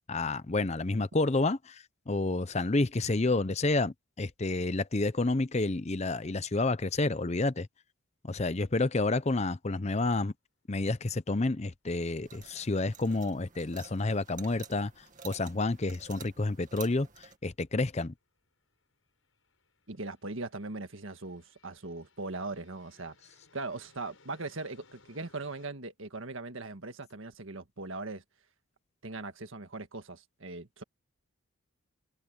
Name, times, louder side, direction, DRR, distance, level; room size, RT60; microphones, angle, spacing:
voice 1, 0.1-7.7 8.2-10.3 10.7-18.1, left 2 dB, 30° left, 0.7 m, -29 dB
sound 1, 12.2-17.4, right 7 dB, 35° right, 2.2 m, -51 dB
sound 2, 17.0-25.7, left 3 dB, 65° left, 7.7 m, -65 dB
voice 2, 19.9-23.1 23.5-28.2 29.0-30.8, right 3 dB, 65° right, 1.7 m, -40 dB
head